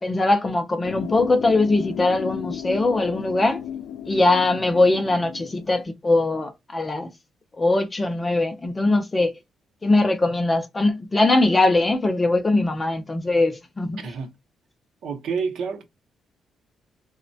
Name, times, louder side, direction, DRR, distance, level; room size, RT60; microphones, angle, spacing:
voice 1, 0.0-3.6 4.1-7.1 7.6-9.3 9.8-14.0, left 2 dB, 15° left, 0.4 m, -21 dB
sound 1, 0.8-5.8, left 9 dB, 80° left, 0.4 m, -34 dB
voice 2, 14.0-14.3 15.0-15.9, right 5 dB, 65° right, 0.6 m, -29 dB
3.1 x 2.1 x 2.5 m
cardioid pair, 170°, 0 cm